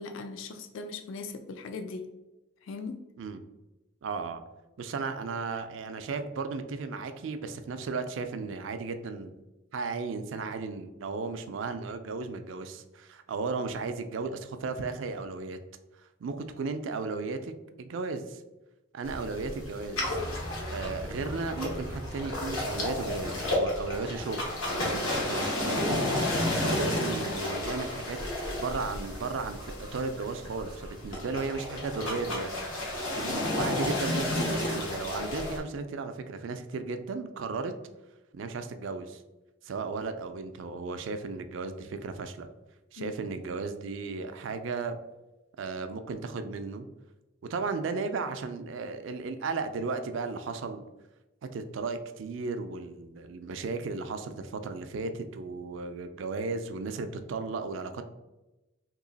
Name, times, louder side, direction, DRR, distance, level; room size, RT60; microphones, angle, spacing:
voice 1, 0.0-2.1 2.6-3.0 43.0-43.1, left 4 dB, 70° left, 8 dB, 0.3 m, -39 dB
voice 2, 4.0-4.4 4.8-9.3 9.7-15.6 16.0-17.5 17.8-18.4 18.9-20.2 20.7-24.5 24.7-26.1 26.6-28.2 28.5-32.5 33.2-37.7 38.3-39.2 39.6-42.5 42.9-45.0 45.6-46.9 47.5-50.8 51.4-58.0, right 4 dB, 65° right, 8 dB, 0.4 m, -35 dB
sound 1, 19.0-35.6, left 1 dB, 90° left, 1.1 m, -32 dB
3.0 x 2.8 x 3.9 m, 1.0 s
head